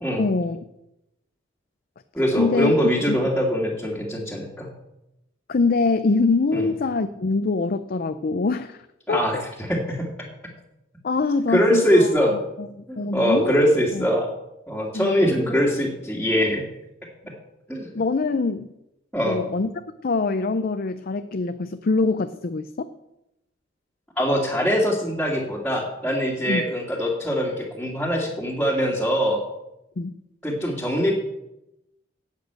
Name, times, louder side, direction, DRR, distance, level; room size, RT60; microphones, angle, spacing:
voice 1, 0.2-0.6 2.4-2.7 3.1-3.2 5.5-8.8 9.1-9.3 11.0-14.1 14.9-15.3 17.9-18.7 19.2-19.7 20.0-22.9 26.5-26.6 30.0-30.1, left 3 dB, 50° left, 10 dB, 0.5 m, -24 dB
voice 2, 2.1-4.7 6.5-6.7 9.1-9.4 9.7-10.1 11.5-12.3 12.9-14.3 14.7-16.6 17.7-17.9 19.1-19.4 24.2-29.4 30.4-31.1, equal, 5° left, -7 dB, 2.1 m, -22 dB
10.5 x 8.4 x 7.9 m, 0.89 s
head